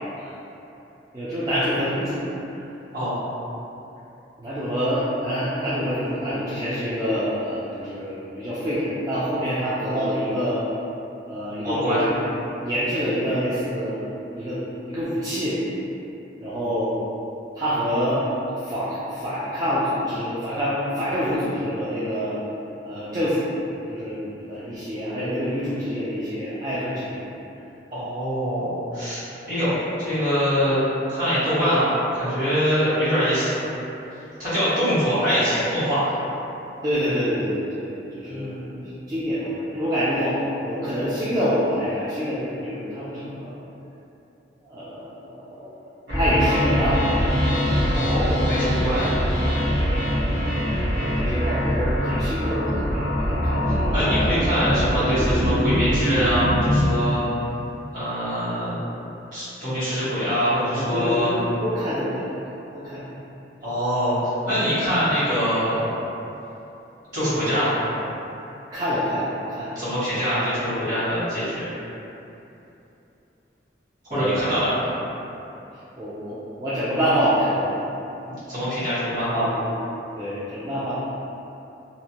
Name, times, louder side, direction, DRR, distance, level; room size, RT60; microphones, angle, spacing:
voice 1, 1.1-2.2 4.4-10.6 11.3-12.1 12.6-14.0 14.3-14.6 14.8-15.6 16.4-16.9 17.5-18.2 18.6-22.4 22.8-23.5 23.9-27.3 36.8-37.9 38.1-38.5 38.8-43.5 44.7-45.7 46.1-47.0 49.8-50.0 51.0-54.1 60.7-62.2 62.7-63.0 68.7-69.7 74.1-74.6 76.0-77.8 79.1-79.7 80.2-80.9, equal, 20° right, -12 dB, 0.3 m, -26 dB
voice 2, 11.6-12.0 27.9-33.5 34.4-36.1 38.3-38.8 47.9-49.1 53.9-57.3 57.9-58.8 59.3-61.4 63.6-64.2 64.4-65.9 67.1-67.8 69.7-71.7 74.1-74.9 78.5-79.5, equal, 45° right, -14 dB, 1.4 m, -24 dB
sound 1, 46.1-56.9, equal, 80° right, 1.0 m, -23 dB
2.6 x 2.1 x 2.8 m, 2.9 s
head